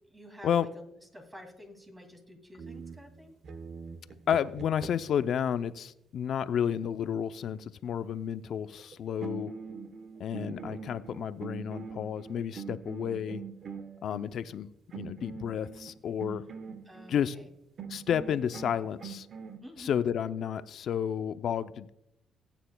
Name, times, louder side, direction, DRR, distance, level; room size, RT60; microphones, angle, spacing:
voice 1, 0.1-3.3 16.9-17.5 19.6-20.0, equal, 15° right, 4 dB, 2.3 m, -50 dB
sound 1, 2.6-5.3 8.8-8.9 9.2-14.3 14.9-17.2 17.8-19.6, right 6 dB, 55° right, 0.9 m, -43 dB
voice 2, 4.3-9.5 10.2-13.4 14.0-14.7 14.9-16.4 17.1-17.4 17.9-19.3 19.8-21.9, left 8 dB, 65° left, 13 dB, 0.5 m, -31 dB
18.5 x 9.1 x 2.2 m, 0.82 s
cardioid pair, 90°, 0 cm